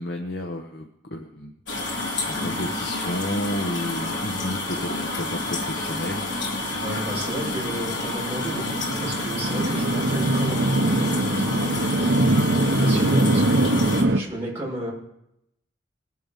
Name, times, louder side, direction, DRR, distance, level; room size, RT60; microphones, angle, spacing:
voice 1, 0.0-1.5 1.8-6.3, left 1 dB, 60° left, 3 dB, 1.2 m, -31 dB
sound 1, 1.7-14.0, left 2 dB, 75° left, 3.6 m, -29 dB
sound 2, 6.5-14.2, right 2 dB, 80° right, 0.9 m, -23 dB
voice 2, 6.8-8.7 9.0-14.9, right 1 dB, 15° right, -5 dB, 6.2 m, -34 dB
21.0 x 7.9 x 5.4 m, 0.80 s
head